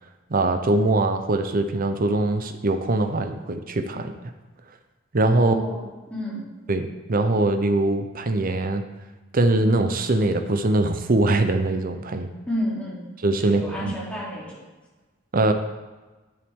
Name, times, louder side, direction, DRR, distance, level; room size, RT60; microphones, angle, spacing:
voice 1, 0.3-4.1 5.1-5.5 6.7-8.8 9.3-12.3 13.2-14.0 15.3-15.5, right 2 dB, 45° right, 7 dB, 0.7 m, -22 dB
voice 2, 5.3-5.8 6.1-6.4 12.5-13.1 13.4-14.6, equal, 5° left, -9 dB, 3.3 m, -30 dB
9.9 x 8.0 x 3.7 m, 1.2 s
head